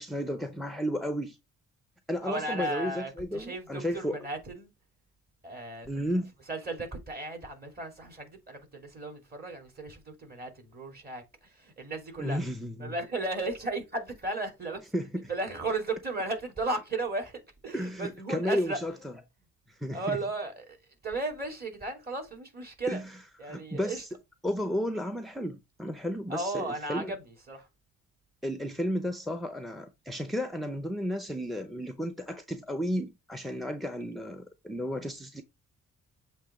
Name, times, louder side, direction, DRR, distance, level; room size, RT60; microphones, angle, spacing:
voice 1, 0.0-1.4 2.1-4.3 5.8-6.3 12.2-12.9 14.9-15.3 17.7-19.1 19.7-20.2 22.9-23.2 23.4-24.1 24.4-27.1 28.4-35.4, equal, ahead, 0.6 m, -33 dB
voice 2, 2.2-4.7 5.4-6.0 6.5-11.2 11.5-12.4 12.8-14.8 15.3-18.8 19.9-20.8 21.0-23.0 23.4-24.0 26.3-27.7, right 2 dB, 30° right, 2.8 m, -35 dB
7.5 x 3.0 x 4.9 m
cardioid pair, 90°, 30 cm